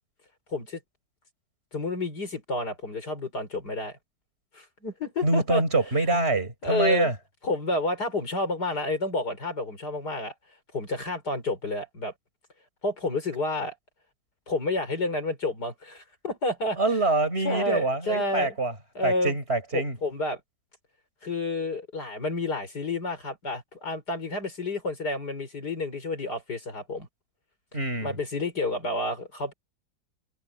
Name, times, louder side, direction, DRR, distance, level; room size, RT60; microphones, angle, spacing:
voice 1, 0.5-0.8 1.7-4.0 4.5-5.6 6.1-6.3 6.6-7.1 7.4-10.3 10.7-12.1 12.8-13.8 14.5-16.8 17.4-18.6 19.0-19.4 19.7-20.4 21.2-27.1 28.0-29.5, left 2 dB, 65° left, 5.6 m, -30 dB
voice 2, 5.2-7.1 16.8-18.7 19.0-20.0 27.7-28.1, right 3 dB, 35° right, 6.3 m, -25 dB
omnidirectional pair, 1.9 m